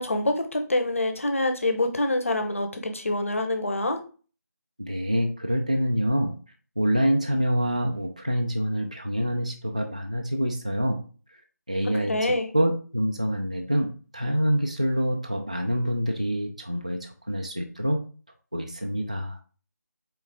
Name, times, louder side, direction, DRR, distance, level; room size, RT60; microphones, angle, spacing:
voice 1, 0.0-4.0 12.1-12.5, left 2 dB, 45° left, 6 dB, 0.8 m, -26 dB
voice 2, 4.8-6.3 6.8-11.0 11.7-18.0 18.5-19.4, equal, 25° right, 3 dB, 0.3 m, -26 dB
4.1 x 3.8 x 3.4 m, 0.37 s
figure-of-eight pair, 175°, 10 cm